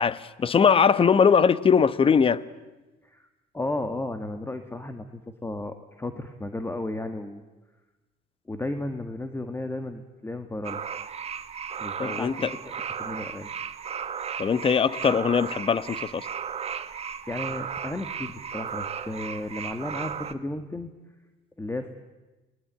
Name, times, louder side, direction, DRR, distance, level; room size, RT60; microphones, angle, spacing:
voice 1, 0.0-2.4 12.0-12.5 14.4-16.3, left 6 dB, 30° left, 1.0 m, -21 dB
voice 2, 3.5-7.4 8.5-10.8 11.8-12.3 13.0-13.5 17.3-20.9 21.6-21.9, left 2 dB, 15° left, 1.6 m, -33 dB
sound 1, 10.6-20.3, right 7 dB, 40° right, 1.4 m, -35 dB
29.0 x 21.0 x 8.9 m
cardioid pair, 110°, 17 cm